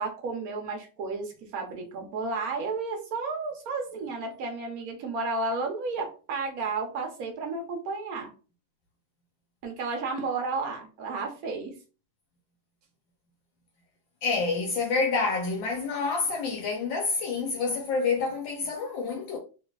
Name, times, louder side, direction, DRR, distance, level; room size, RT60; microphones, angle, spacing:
voice 1, 0.0-8.3 9.6-11.8, right 3 dB, 55° right, 1.1 m, -32 dB
voice 2, 14.2-19.4, left 4 dB, 75° left, 1.3 m, -28 dB
3.2 x 3.2 x 2.3 m
omnidirectional pair, 2.2 m